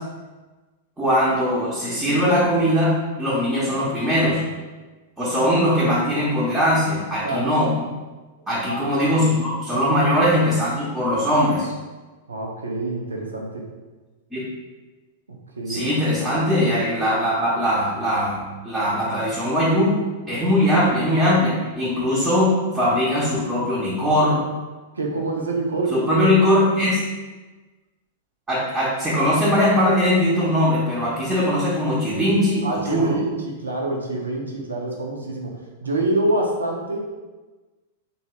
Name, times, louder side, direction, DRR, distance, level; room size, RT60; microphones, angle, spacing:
voice 1, 1.0-4.4 5.2-7.8 8.5-11.7 14.3-14.4 15.7-20.0 20.3-24.4 25.9-27.0 28.5-33.2, left 1 dB, 10° right, -9 dB, 0.7 m, -20 dB
voice 2, 12.3-13.6 15.6-15.9 25.0-26.3 32.6-35.5 35.8-37.0, right 2 dB, 80° right, 0 dB, 0.5 m, -26 dB
2.6 x 2.2 x 2.9 m, 1.2 s
figure-of-eight pair, 100°, 0 cm